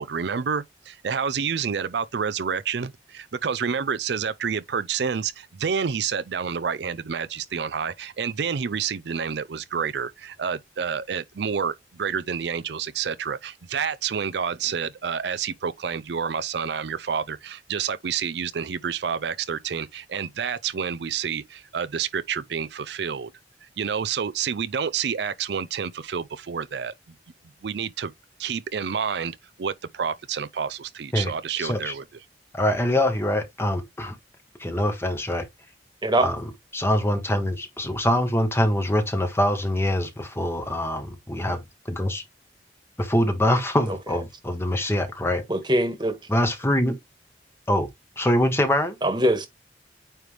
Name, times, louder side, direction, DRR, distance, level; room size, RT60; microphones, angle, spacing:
voice 1, 0.0-23.3 23.8-26.9 27.6-28.1 28.4-32.0, right 6 dB, 70° right, 0.5 m, -29 dB
voice 2, 31.6-31.9 32.5-34.1 34.6-35.4 36.2-41.6 41.9-42.2 43.0-45.4 46.3-47.0 47.7-47.9 48.2-48.9, left 1 dB, 15° left, 1.2 m, -24 dB
voice 3, 45.5-46.2 49.0-49.5, right 1 dB, 25° right, 1.5 m, -22 dB
9.0 x 3.2 x 3.3 m
head